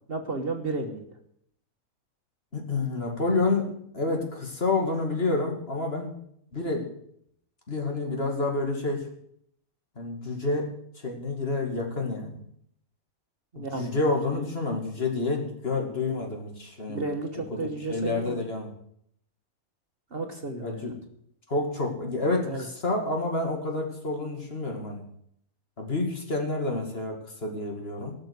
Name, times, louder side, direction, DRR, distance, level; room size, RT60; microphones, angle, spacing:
voice 1, 0.1-1.1 13.5-14.0 14.3-14.5 16.9-18.4 20.1-20.9 22.4-22.6, right 3 dB, 45° right, 4 dB, 1.5 m, -33 dB
voice 2, 2.5-6.1 6.5-6.9 7.7-9.1 10.0-10.7 11.0-12.4 13.6-17.0 17.5-17.6 17.9-18.7 20.6-20.9 21.5-25.0 25.8-28.1, left 3 dB, 45° left, 2 dB, 2.5 m, -29 dB
17.0 x 6.4 x 8.1 m, 0.70 s
omnidirectional pair, 1.5 m